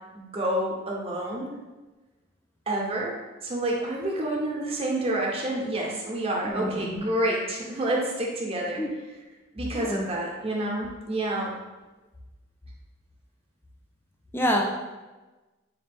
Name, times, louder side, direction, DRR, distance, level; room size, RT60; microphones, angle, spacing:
voice 1, 0.1-1.5 2.7-3.2 3.4-8.8 9.5-11.5, right 1 dB, 30° right, -2 dB, 0.6 m, -28 dB
voice 2, 6.4-7.1 8.8-8.9 9.7-10.1 14.3-14.7, equal, 10° left, 1 dB, 0.4 m, -27 dB
4.1 x 2.5 x 3.3 m, 1.2 s
head